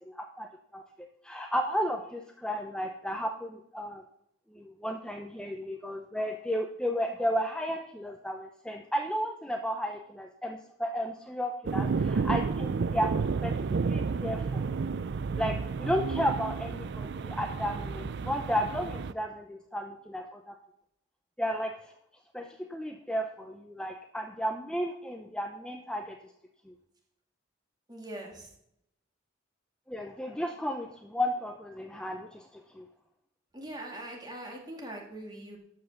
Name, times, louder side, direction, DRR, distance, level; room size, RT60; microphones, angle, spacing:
voice 1, 0.0-4.0 4.5-13.6 13.8-14.9 15.4-20.5 21.4-21.9 22.3-26.2 26.7-26.8 29.9-32.9, equal, 5° left, 3 dB, 0.6 m, -33 dB
sound 1, 11.6-19.1, right 5 dB, 60° right, 0.4 m, -31 dB
voice 2, 27.9-28.5 33.5-35.6, right 1 dB, 20° right, 0 dB, 2.4 m, -42 dB
13.0 x 5.8 x 6.6 m, 0.76 s
head